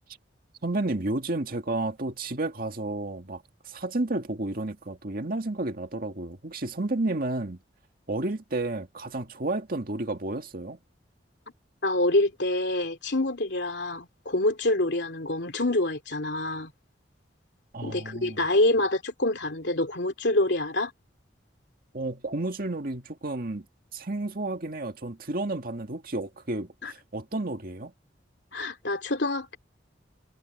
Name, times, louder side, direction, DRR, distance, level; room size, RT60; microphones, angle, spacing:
voice 1, 0.6-7.6 8.1-10.8 17.7-18.4 21.9-23.7 23.9-27.9, right 2 dB, 50° right, 1.9 m, -31 dB
voice 2, 11.8-16.7 17.8-20.9 26.8-26.9 28.5-29.6, left 2 dB, 70° left, 3.0 m, -26 dB
head